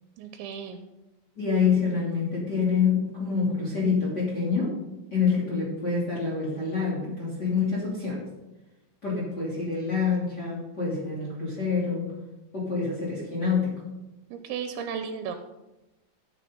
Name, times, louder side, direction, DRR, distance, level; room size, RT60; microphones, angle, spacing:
voice 1, 0.2-0.8 14.3-15.4, right 7 dB, 80° right, 6 dB, 3.0 m, -34 dB
voice 2, 1.4-4.7 5.1-8.2 9.0-12.1 12.5-13.7, left 5 dB, 25° left, -6 dB, 2.9 m, -26 dB
14.0 x 9.1 x 3.9 m, 0.99 s
omnidirectional pair, 5.3 m